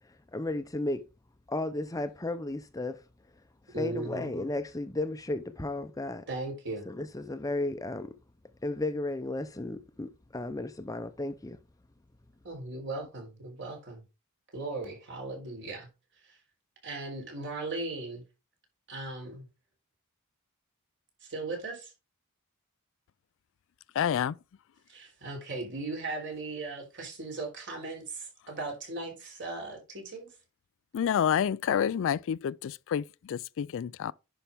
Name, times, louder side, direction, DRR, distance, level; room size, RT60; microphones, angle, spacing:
voice 1, 0.3-1.0 1.5-3.0 3.7-6.2 6.9-8.1 8.6-11.6, left 2 dB, 15° left, 0.6 m, -34 dB
voice 2, 3.7-4.3 6.3-6.9 12.4-14.0 14.5-15.9 16.8-18.2 18.9-19.5 21.2-21.9 24.9-30.3, right 3 dB, 55° right, 3.7 m, -37 dB
voice 3, 24.0-24.4 30.9-34.1, left 8 dB, 60° left, 0.3 m, -28 dB
10.0 x 5.7 x 3.5 m
head